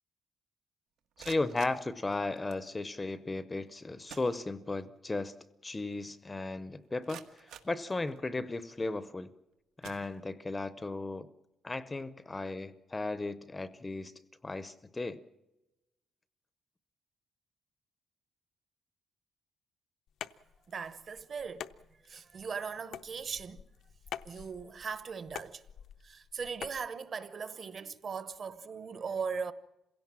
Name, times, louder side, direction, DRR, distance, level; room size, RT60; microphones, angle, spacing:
sound 1, 1.0-2.7 3.7-3.8 4.1-5.0 5.3-5.4 6.0-6.1 6.6-8.5 9.1-9.3 9.8-10.6, right 9 dB, 90° right, 1.7 m, -53 dB
voice 1, 1.2-5.3 5.6-9.3 9.8-11.3 11.6-14.1 14.4-15.2, left 2 dB, 15° left, 0.7 m, -35 dB
sound 2, 20.1-26.9, left 9 dB, 60° left, 0.7 m, -47 dB
voice 2, 20.7-21.7 22.0-23.6 24.2-25.6 26.0-29.5, right 5 dB, 35° right, 0.9 m, -39 dB
27.0 x 17.0 x 7.4 m
cardioid pair, 180°, 0 cm